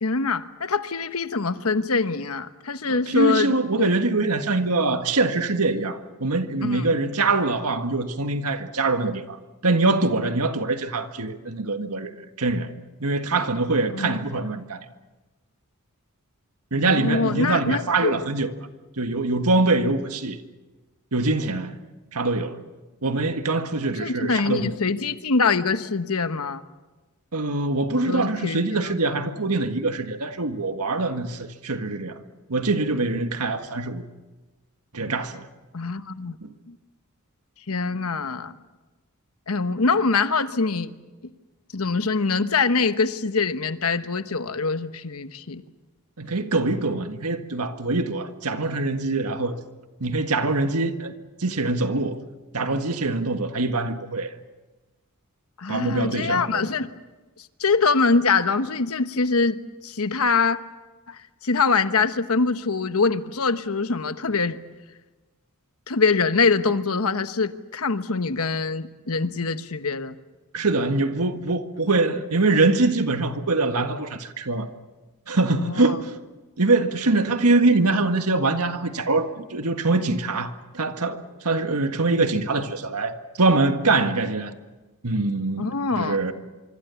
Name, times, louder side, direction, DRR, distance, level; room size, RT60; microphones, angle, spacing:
voice 1, 0.0-3.5 3.8-3.9 6.6-6.9 13.9-14.2 16.8-18.3 24.0-26.7 28.0-28.6 35.7-36.4 36.7-36.8 37.7-38.5 39.5-40.9 41.7-45.6 55.6-56.9 57.6-60.6 61.1-64.6 65.9-70.2 75.5-76.0 85.6-86.2, left 4 dB, 70° left, 1.1 m, -24 dB
voice 2, 2.9-9.4 9.6-12.1 12.4-12.7 13.0-14.9 16.7-18.5 19.0-20.4 21.1-21.7 22.1-22.6 23.0-24.7 27.3-32.2 32.5-34.0 34.9-35.5 36.4-36.5 46.2-49.6 50.0-51.1 51.4-52.2 52.5-54.3 55.7-56.7 70.5-74.7 75.3-76.2 76.6-84.5 85.0-86.3, right 3 dB, 85° right, 1.8 m, -23 dB
25.0 x 24.5 x 7.1 m
head